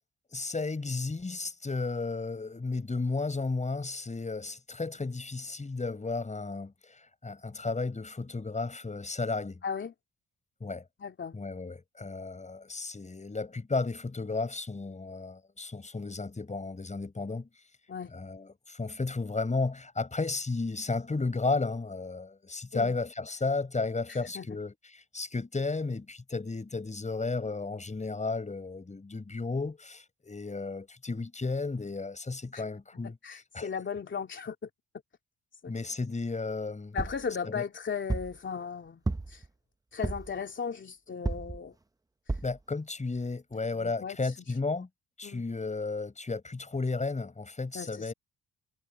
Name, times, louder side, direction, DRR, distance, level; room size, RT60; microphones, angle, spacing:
voice 1, 0.3-9.6 10.6-10.8 11.3-17.5 18.1-33.2 33.5-33.7 35.7-37.0 37.5-37.6 42.4-44.9 45.2-48.1, left 3 dB, 25° left, 7.1 m, -33 dB
voice 2, 9.6-9.9 11.0-11.4 17.9-18.1 22.7-23.0 24.1-24.6 32.5-32.6 33.0-34.7 35.6-35.7 36.9-39.0 39.3-39.5 39.9-41.8 42.3-42.4 43.7-44.3 45.2-45.4 47.7-48.1, left 6 dB, 40° left, 2.8 m, -37 dB
sound 1, 37.0-37.3 38.1-38.4 39.1-39.5 40.0-40.4 41.3-41.6 42.3-42.6 43.2-43.3 43.5-43.6, right 3 dB, 10° right, 0.8 m, -32 dB
cardioid pair, 90°, 30 cm